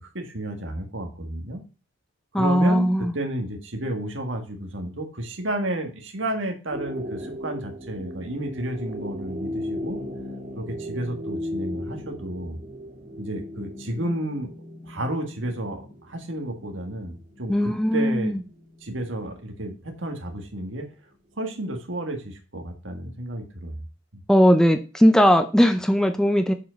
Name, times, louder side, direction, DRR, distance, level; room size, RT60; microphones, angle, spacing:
voice 1, 0.1-1.6 2.3-10.0 10.6-12.6 13.2-14.5 14.9-18.4 18.8-20.9 21.4-23.8, right 1 dB, 70° right, 4 dB, 1.7 m, -32 dB
voice 2, 2.3-3.1 17.5-18.4 24.3-26.5, equal, 5° left, 7 dB, 0.5 m, -19 dB
sound 1, 6.7-20.4 20.7-20.8, left 1 dB, 40° right, 3.2 m, -37 dB
7.2 x 5.0 x 5.1 m, 0.33 s
head